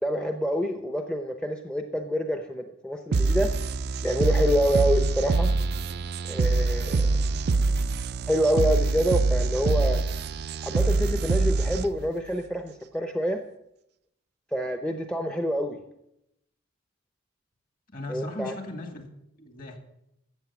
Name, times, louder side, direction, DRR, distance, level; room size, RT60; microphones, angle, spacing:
voice 1, 0.0-3.5 4.0-5.5 6.3-7.2 8.3-10.0 10.6-13.4 14.5-15.8 18.1-18.5, equal, 5° left, 0.6 m, -27 dB
sound 1, 3.1-12.1, right 3 dB, 50° right, 0.4 m, -25 dB
voice 2, 17.9-19.1 19.4-19.8, left 1 dB, 45° left, 2.0 m, -37 dB
14.0 x 8.0 x 7.0 m
head